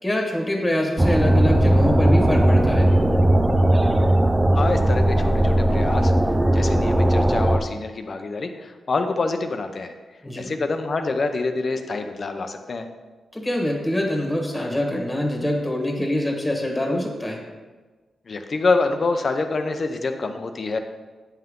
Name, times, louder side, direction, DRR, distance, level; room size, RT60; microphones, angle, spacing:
voice 1, 0.0-2.9 10.2-10.5 13.3-17.4, left 1 dB, 10° left, 1 dB, 1.6 m, -24 dB
sound 1, 1.0-7.6, right 1 dB, 15° right, 0.6 m, -18 dB
voice 2, 4.5-6.1 6.5-9.9 10.4-12.9 18.3-20.8, left 3 dB, 50° left, 6 dB, 0.7 m, -26 dB
9.1 x 5.7 x 3.7 m, 1.3 s
cardioid pair, 80°, 0 cm